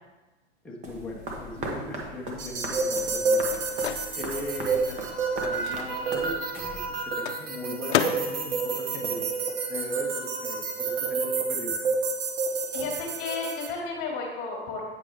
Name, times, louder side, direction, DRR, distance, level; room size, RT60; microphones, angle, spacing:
voice 1, 0.6-3.8 4.1-9.3 9.7-11.8, left 2 dB, 5° left, -4 dB, 0.8 m, -39 dB
sound 1, 0.8-7.1, right 1 dB, 20° right, 1.0 m, -39 dB
Microwave oven, 2.1-10.1 10.4-12.3, left 10 dB, 75° left, 0.6 m, -36 dB
sound 2, 2.4-13.7, right 4 dB, 50° right, 1.3 m, -29 dB
voice 2, 12.7-14.8, left 4 dB, 30° left, 0 dB, 1.7 m, -33 dB
8.6 x 4.8 x 3.5 m, 1.1 s
hypercardioid pair, 140°, 33 cm